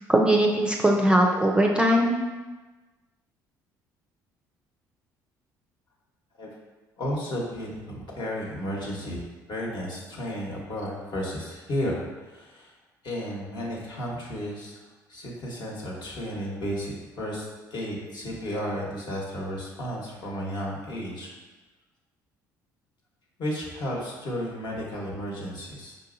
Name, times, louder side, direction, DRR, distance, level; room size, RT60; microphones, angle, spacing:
voice 1, 0.1-2.2, right 1 dB, 10° right, 0 dB, 0.4 m, -20 dB
voice 2, 7.0-9.2 9.5-12.7 13.0-14.8 15.1-21.3 23.4-26.0, equal, 50° left, -3 dB, 1.2 m, -33 dB
5.1 x 2.6 x 2.6 m, 1.2 s
hypercardioid pair, 65°, 9 cm